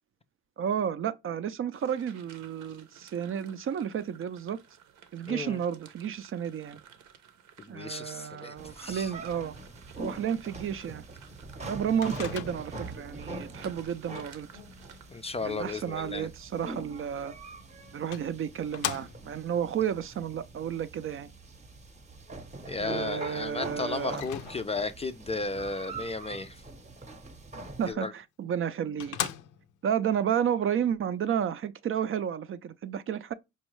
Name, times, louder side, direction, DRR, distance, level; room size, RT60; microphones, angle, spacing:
voice 1, 0.6-4.6 5.1-6.8 7.7-9.6 10.0-11.0 11.7-14.5 15.4-17.3 17.9-21.3 22.8-24.3 27.8-29.2 29.8-33.3, right 8 dB, 45° right, 0.4 m, -32 dB
sound 1, 1.7-15.7, right 8 dB, 80° right, 0.8 m, -55 dB
voice 2, 5.2-5.6 7.6-9.1 12.2-12.4 15.1-16.3 22.7-26.6 27.9-28.1, left 3 dB, 20° left, 0.3 m, -34 dB
sound 2, 8.6-27.9, right 2 dB, 25° right, 0.8 m, -44 dB
Microwave oven, 12.0-12.9 17.3-17.4 18.1-19.5 24.1-25.0 28.1-28.2 28.6-28.7 29.0-29.9, left 11 dB, 80° left, 0.5 m, -37 dB
5.2 x 2.3 x 3.0 m
cardioid pair, 90°, 30 cm